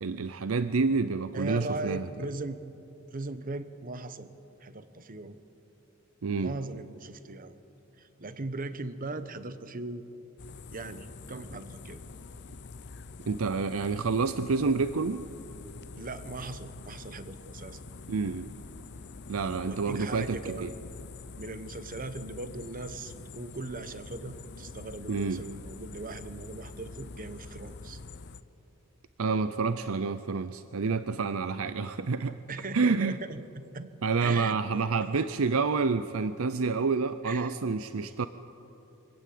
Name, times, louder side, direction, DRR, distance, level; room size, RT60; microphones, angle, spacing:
voice 1, 0.0-2.1 6.2-6.5 13.3-15.2 18.1-18.5 19.3-20.7 25.1-25.4 29.2-32.4 32.7-33.2 34.0-38.3, right 4 dB, 75° right, 12 dB, 0.6 m, -28 dB
voice 2, 1.3-2.7 3.1-4.3 4.6-5.4 6.4-7.6 8.0-10.0 10.7-12.0 12.5-12.6 16.0-17.8 19.6-20.7 21.4-28.0 32.5-33.9 34.2-35.1 37.2-37.5, right 2 dB, 40° right, 12 dB, 1.0 m, -39 dB
sound 1, 10.4-28.4, left 4 dB, 55° left, 0.7 m, -46 dB
24.5 x 17.0 x 8.5 m, 2.9 s
head